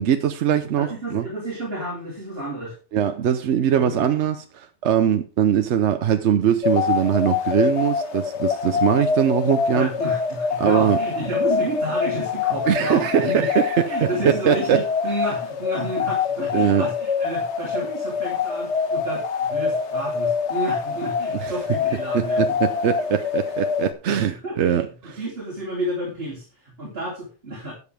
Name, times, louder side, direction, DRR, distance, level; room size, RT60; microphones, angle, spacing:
voice 1, 0.0-1.2 2.9-9.9 10.6-11.0 12.7-14.1 14.4-14.8 16.5-16.9 21.4-21.5 22.1-25.2, right 9 dB, 80° right, 1.0 m, -21 dB
voice 2, 0.8-2.8 3.8-4.1 9.7-13.5 13.9-22.6 24.1-27.7, right 1 dB, 55° right, 3.3 m, -31 dB
sound 1, 6.6-23.9, left 6 dB, 75° left, 1.3 m, -25 dB
12.0 x 8.3 x 3.4 m
omnidirectional pair, 1.2 m